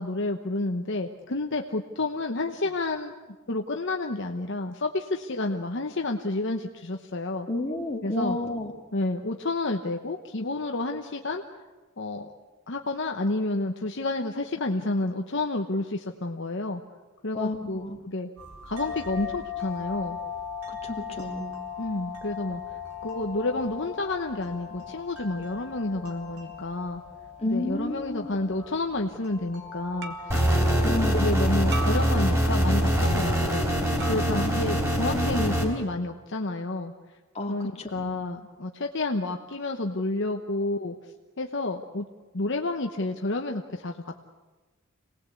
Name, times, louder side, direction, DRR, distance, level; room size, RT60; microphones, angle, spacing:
voice 1, 0.0-3.1 3.5-7.5 8.0-8.4 8.9-11.4 12.0-12.3 12.7-16.8 17.2-18.3 18.6-20.2 21.8-27.0 27.5-30.3 31.1-33.7 34.0-36.9 37.5-42.1 42.3-44.2, left 2 dB, 55° left, 3 dB, 1.0 m, -30 dB
voice 2, 7.5-8.7 17.3-18.0 20.7-21.6 27.4-28.4 30.8-31.5 34.3-34.6 35.1-35.5 37.3-38.2, left 1 dB, 30° left, 1 dB, 2.5 m, -31 dB
sound 1, 18.4-32.9, left 6 dB, 85° right, 4.8 m, -39 dB
sound 2, 28.6-28.9 30.0-30.5 31.7-32.6 34.0-34.6, right 2 dB, 50° right, 2.0 m, -39 dB
sound 3, 30.3-35.6, equal, 15° right, 4.0 m, -23 dB
27.0 x 19.0 x 8.3 m, 1.3 s
head